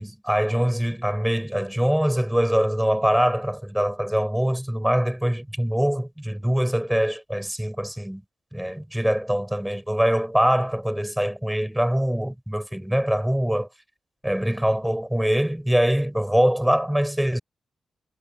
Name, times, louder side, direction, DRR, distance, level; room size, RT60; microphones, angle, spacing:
voice 1, 0.0-8.2 8.5-13.7 14.2-17.4, equal, 5° right, 7.5 m, -23 dB
wide cardioid pair, 170°, 0 cm